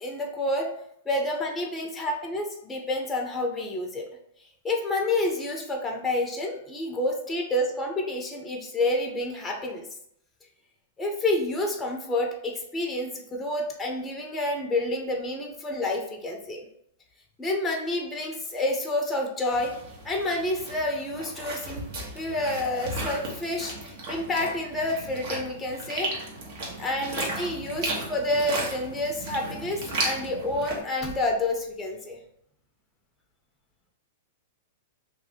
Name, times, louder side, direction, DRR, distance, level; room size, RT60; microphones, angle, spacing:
voice 1, 0.0-0.7 1.1-4.1 4.6-9.9 11.0-16.6 17.4-19.7 20.0-21.9 22.1-26.1 26.8-32.2, left 1 dB, 10° left, 1 dB, 0.6 m, -29 dB
sound 1, 19.5-30.8, right 2 dB, 55° right, 1.1 m, -35 dB
2.9 x 2.6 x 3.5 m, 0.72 s
hypercardioid pair, 130°, 0 cm